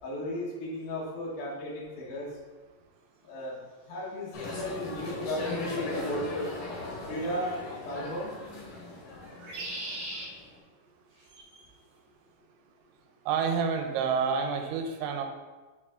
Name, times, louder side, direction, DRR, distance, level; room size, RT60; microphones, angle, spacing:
voice 1, 0.0-2.3 3.2-3.6 3.9-6.5 7.1-8.4, left 1 dB, 70° left, -4 dB, 1.9 m, -35 dB
sound 1, 4.3-10.5, left 2 dB, 55° left, 2.8 m, -38 dB
sound 2, 4.7-4.8 7.1-7.5 9.3-10.3 11.2-11.6, right 1 dB, 65° right, 1.7 m, -39 dB
voice 2, 13.3-15.2, right 6 dB, 80° right, 5 dB, 3.0 m, -28 dB
6.6 x 4.9 x 3.7 m, 1.3 s
omnidirectional pair, 5.4 m